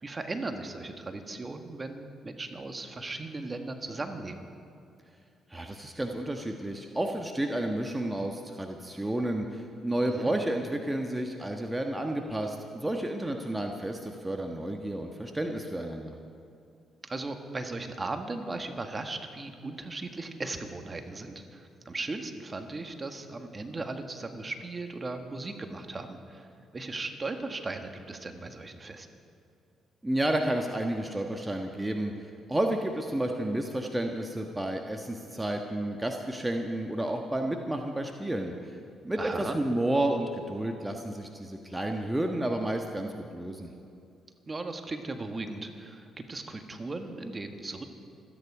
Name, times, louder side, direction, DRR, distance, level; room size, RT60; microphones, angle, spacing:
voice 1, 0.0-4.4 10.0-10.3 17.0-26.5 26.7-29.1 39.2-39.6 44.5-47.8, right 3 dB, 30° right, 6 dB, 1.7 m, -37 dB
voice 2, 5.5-16.2 30.0-32.1 32.5-38.8 39.0-43.7, right 1 dB, 15° right, 3 dB, 1.4 m, -31 dB
26.5 x 10.0 x 4.9 m, 2.5 s
hypercardioid pair, 45°, 0 cm